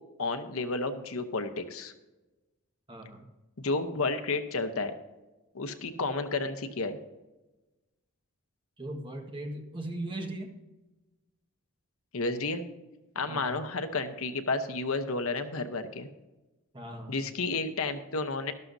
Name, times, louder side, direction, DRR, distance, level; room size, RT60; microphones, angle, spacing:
voice 1, 0.2-1.9 3.6-4.9 5.5-7.0 12.1-12.6 13.1-16.1 17.1-18.5, left 3 dB, 70° left, 8 dB, 0.9 m, -31 dB
voice 2, 2.9-3.2 8.8-10.5 13.3-13.6 16.7-17.2, right 1 dB, 20° right, 2 dB, 1.4 m, -38 dB
12.5 x 12.0 x 2.7 m, 1.1 s
head